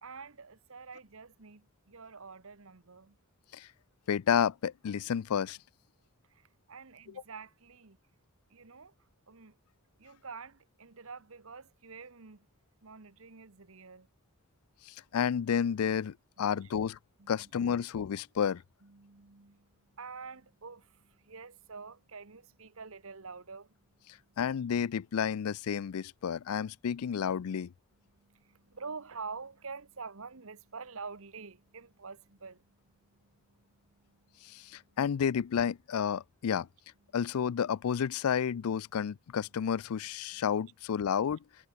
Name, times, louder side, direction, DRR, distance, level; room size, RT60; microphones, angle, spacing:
voice 1, 0.0-3.2 6.3-8.0 8.5-8.9 9.3-9.5 10.0-12.5 12.8-14.1 16.4-16.7 17.2-17.5 18.8-23.7 24.2-24.4 28.1-35.0, right 4 dB, 65° right, 1.2 m, -47 dB
voice 2, 4.1-5.6 14.8-17.0 17.3-18.6 24.4-27.7 34.4-36.7 37.1-41.4, left 7 dB, 75° left, 0.4 m, -31 dB
head